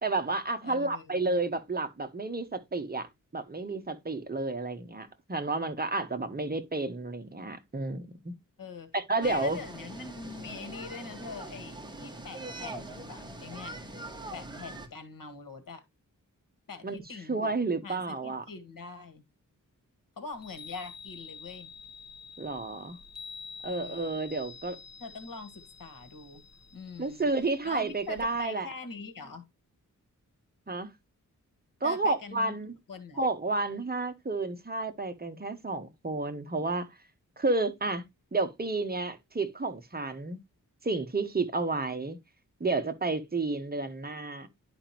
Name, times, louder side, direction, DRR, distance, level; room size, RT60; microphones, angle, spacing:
voice 1, 0.0-3.1 3.3-8.3 8.9-9.6 16.8-17.0 17.3-18.4 22.4-23.0 23.6-24.8 27.0-28.7 30.7-30.9 31.8-32.7 33.2-36.9 37.4-38.0 38.3-40.4 40.8-42.2 42.6-44.5, right 3 dB, 30° right, 1.1 m, -31 dB
voice 2, 0.6-1.4 8.6-8.9 9.2-13.8 14.3-15.8 16.7-17.6 17.8-19.2 20.2-21.7 23.6-24.3 25.0-26.4 26.7-27.3 27.6-29.5 31.8-32.5 32.9-33.3, left 4 dB, 90° left, 1.8 m, -43 dB
sound 1, 9.2-14.9, right 1 dB, 15° right, 1.5 m, -42 dB
Chime, 20.3-28.5, left 5 dB, 50° left, 1.4 m, -48 dB
11.0 x 5.2 x 2.9 m
wide cardioid pair, 115°, 33 cm